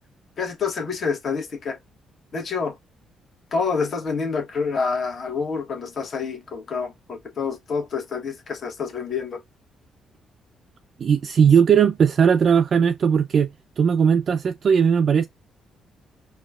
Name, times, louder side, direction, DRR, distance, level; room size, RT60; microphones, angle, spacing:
voice 1, 0.4-1.8 2.3-2.7 3.5-9.4, left 5 dB, 50° left, 1.2 m, -27 dB
voice 2, 11.0-13.5 13.8-15.3, right 7 dB, 50° right, 0.3 m, -18 dB
4.1 x 2.3 x 2.4 m
cardioid pair, 90°, 0 cm